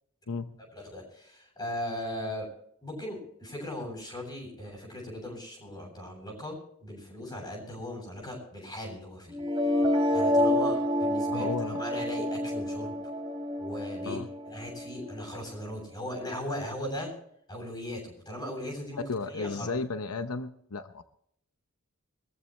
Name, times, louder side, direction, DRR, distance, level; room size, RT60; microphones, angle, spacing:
voice 1, 0.7-2.5 2.8-9.4 10.1-12.9 13.6-14.2 14.4-17.1 17.5-19.8, left 1 dB, 20° left, 0 dB, 7.9 m, -38 dB
sound 1, 9.3-15.3, left 1 dB, 25° right, 2.6 m, -28 dB
voice 2, 11.3-11.8 14.1-14.3 19.1-21.0, left 4 dB, 90° left, 10 dB, 0.8 m, -34 dB
23.5 x 14.5 x 3.2 m, 0.68 s
head